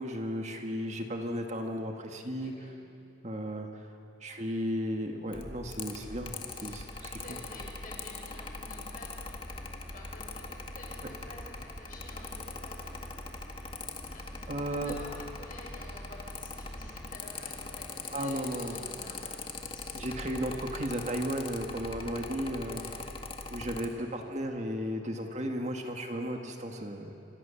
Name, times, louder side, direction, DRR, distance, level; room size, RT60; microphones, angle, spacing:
voice 1, 0.0-2.5 3.2-3.9 4.2-7.4 14.5-14.9 18.1-18.8 19.2-19.3 19.9-22.8 23.5-27.1, equal, 35° right, 3 dB, 1.7 m, -35 dB
voice 2, 2.4-2.8 6.6-6.8 7.2-13.1 14.1-20.8 22.6-23.0, left 1 dB, 45° left, -2 dB, 7.0 m, -51 dB
Mechanical fan, 5.3-23.9, left 3 dB, 30° left, 1.9 m, -41 dB
sound 1, 5.8-21.9, equal, 5° right, 2.4 m, -56 dB
27.0 x 27.0 x 7.1 m, 2.6 s
head